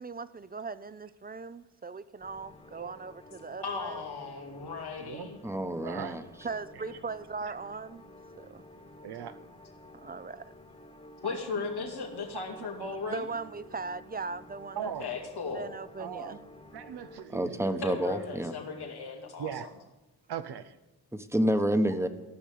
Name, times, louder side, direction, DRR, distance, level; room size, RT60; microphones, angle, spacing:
voice 1, 0.0-4.0 6.4-8.0 8.4-8.6 10.0-10.5 13.1-14.9 15.5-16.4, right 4 dB, 25° right, 0.5 m, -39 dB
sound 1, 2.2-17.2, left 1 dB, 15° left, 1.4 m, -52 dB
voice 2, 3.6-5.4 11.2-13.3 15.0-15.6 17.8-19.5, left 5 dB, 85° left, 2.2 m, -36 dB
voice 3, 4.7-5.4 5.8-6.2 6.8-6.9 7.5-7.6 9.0-9.4 11.2-13.2 14.7-15.1 15.5-15.6 16.0-16.4 16.7-17.8 18.7-19.1 19.4-19.7 20.3-20.8, right 9 dB, 80° right, 0.8 m, -41 dB
voice 4, 5.4-6.2 17.3-18.5 21.1-22.1, right 1 dB, 5° right, 1.1 m, -28 dB
14.0 x 6.2 x 8.5 m
cardioid pair, 70°, 38 cm